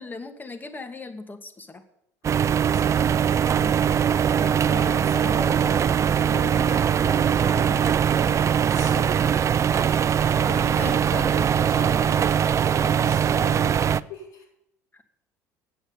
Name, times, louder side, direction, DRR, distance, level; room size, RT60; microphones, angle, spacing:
voice 1, 0.0-1.8 10.8-10.9 14.9-15.0, left 3 dB, 20° left, 8 dB, 1.6 m, -38 dB
sound 1, 2.2-14.0, right 8 dB, 35° right, 0.4 m, -21 dB
voice 2, 2.7-3.1 3.4-9.2 10.3-12.3 12.7-13.8 14.1-14.4, left 3 dB, 80° left, -5 dB, 6.0 m, -38 dB
9.2 x 8.1 x 8.8 m, 0.77 s
hypercardioid pair, 75°, 9 cm